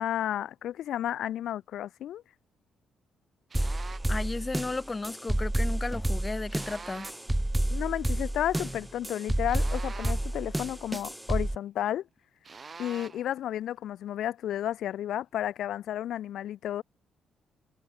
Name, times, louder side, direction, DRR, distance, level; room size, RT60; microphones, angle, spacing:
voice 1, 0.0-2.2 7.7-12.0 12.8-16.8, left 11 dB, 75° left, 0.8 m, -32 dB
sound 1, 3.5-11.6, right 1 dB, 10° right, 0.4 m, -30 dB
sound 2, 3.5-4.2 6.5-7.3 9.5-10.4 12.4-13.3, right 5 dB, 35° right, 1.7 m, -45 dB
voice 2, 4.1-7.1, left 3 dB, 20° left, 0.9 m, -34 dB
cardioid pair, 90°, 0 cm